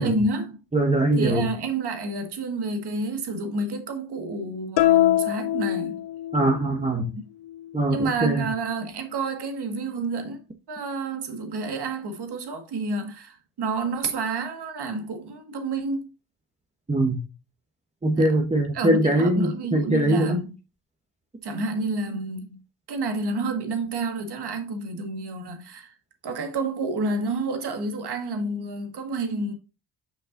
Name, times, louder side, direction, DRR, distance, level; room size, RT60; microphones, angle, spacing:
voice 1, 0.0-0.6 1.2-6.0 7.1-7.2 7.9-10.4 10.7-16.1 18.1-18.3 18.7-20.6 21.4-22.6 22.9-26.0 26.2-29.5, right 3 dB, 60° right, 1.8 m, -29 dB
voice 2, 0.7-1.5 6.3-7.1 7.7-8.4 16.9-17.2 18.0-20.4, right 1 dB, 15° right, 1.1 m, -22 dB
sound 1, 4.8-6.6, left 13 dB, 65° left, 0.6 m, -22 dB
6.7 x 5.4 x 2.5 m
supercardioid pair, 60°, 44 cm